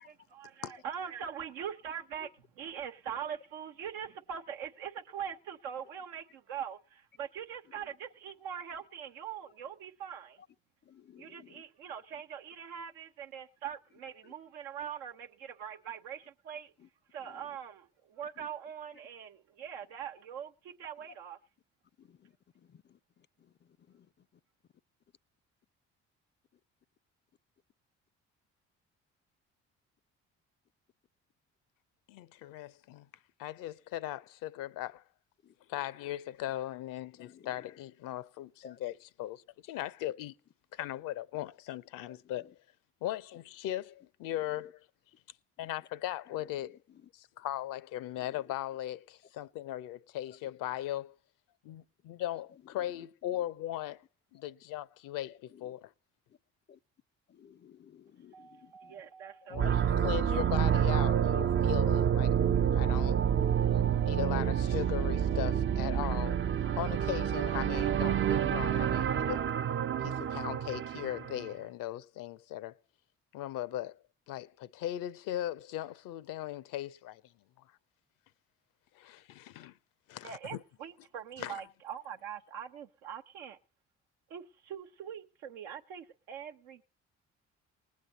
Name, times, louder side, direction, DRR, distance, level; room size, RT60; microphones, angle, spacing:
voice 1, 0.0-10.4 11.2-16.7 17.1-21.4 58.3-60.0 60.7-61.3 80.2-83.6 84.3-86.8, right 8 dB, 85° right, 1.1 m, -43 dB
voice 2, 10.9-11.6 22.0-22.2 22.7-22.8 23.9-24.1 35.4-35.5 37.2-37.5 38.6-38.8 56.7-56.8 57.3-58.9 63.7-64.1, left 8 dB, 30° left, 0.5 m, -56 dB
voice 3, 32.1-33.1 33.4-35.0 35.7-40.3 40.7-42.5 43.0-44.9 45.6-46.8 47.1-51.1 51.6-54.0 54.3-55.9 59.5-62.4 62.7-63.2 64.1-66.4 66.7-69.4 70.0-72.8 73.3-74.0 74.3-77.2 78.9-79.8 80.1-80.6 81.4-81.6, left 13 dB, 70° left, 0.7 m, -38 dB
sound 1, 59.5-71.5, right 9 dB, 35° right, 0.5 m, -28 dB
20.0 x 8.4 x 4.0 m
hypercardioid pair, 55°, 34 cm